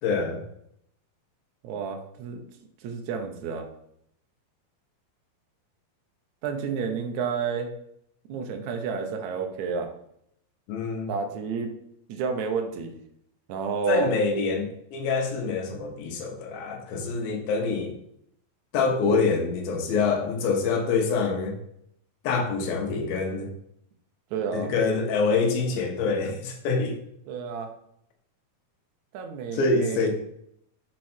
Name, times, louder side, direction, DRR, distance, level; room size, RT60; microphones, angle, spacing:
voice 1, 0.0-0.4 10.7-11.1 13.9-18.0 18.7-21.6 22.2-23.5 24.5-27.0 29.5-30.1, left 4 dB, 80° left, 2 dB, 2.9 m, -25 dB
voice 2, 1.6-2.4 2.8-3.7 6.4-7.7 8.3-9.9 11.1-11.7 12.1-13.0 13.5-14.1 24.3-24.7 27.3-27.7 29.1-30.1, right 6 dB, 70° right, 4 dB, 1.9 m, -30 dB
6.5 x 4.5 x 4.4 m, 0.72 s
omnidirectional pair, 4.2 m